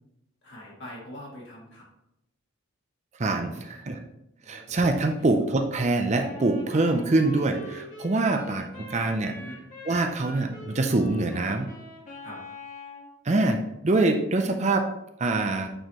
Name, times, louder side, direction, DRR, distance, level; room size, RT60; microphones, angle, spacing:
voice 1, 0.4-1.8 3.4-3.9 4.4-4.8 5.2-5.3 8.2-8.4 8.7-9.6 12.2-12.4, equal, 55° left, -4 dB, 2.3 m, -45 dB
voice 2, 3.2-4.0 4.5-9.4 9.9-11.7 13.2-14.9 15.2-15.7, right 2 dB, 30° right, 5 dB, 0.5 m, -24 dB
Wind instrument woodwind instrument, 6.1-13.1, left 2 dB, 35° left, 1.7 m, -43 dB
8.9 x 4.8 x 3.0 m, 0.86 s
head